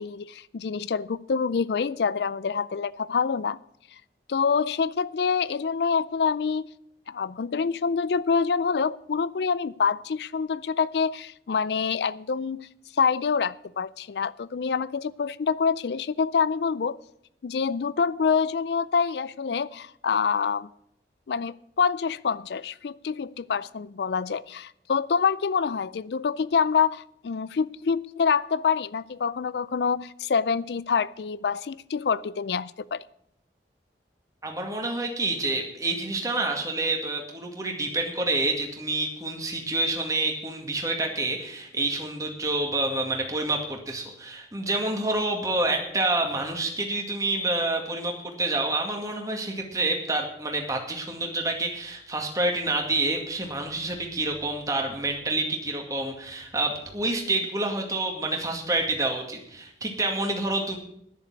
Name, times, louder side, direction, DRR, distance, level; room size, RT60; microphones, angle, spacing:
voice 1, 0.0-3.6 4.3-6.7 7.1-12.7 13.0-17.0 17.4-20.7 21.3-33.0, left 6 dB, 65° left, 19 dB, 0.4 m, -26 dB
voice 2, 34.4-60.8, right 2 dB, 20° right, 2 dB, 2.1 m, -28 dB
11.0 x 6.9 x 9.6 m, 0.73 s
head